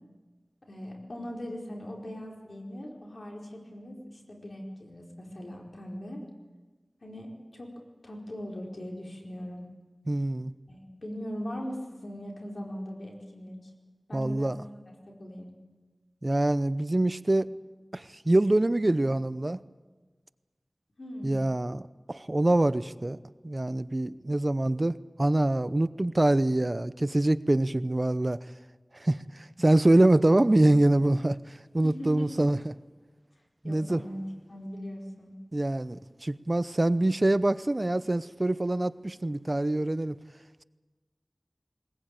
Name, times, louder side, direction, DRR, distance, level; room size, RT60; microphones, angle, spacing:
voice 1, 0.7-6.2 7.0-7.7 8.0-9.7 10.7-13.7 14.1-15.5 21.0-21.4 31.8-32.5 33.6-34.2 34.5-35.3, equal, 75° left, 0 dB, 4.8 m, -40 dB
voice 2, 10.1-10.5 14.1-14.6 16.2-17.5 17.9-19.6 21.2-23.2 23.4-28.4 28.9-32.7 33.6-34.0 35.5-40.1, right 1 dB, 40° right, 15 dB, 0.7 m, -25 dB
20.5 x 20.0 x 8.9 m, 1.3 s
wide cardioid pair, 50°, 0 cm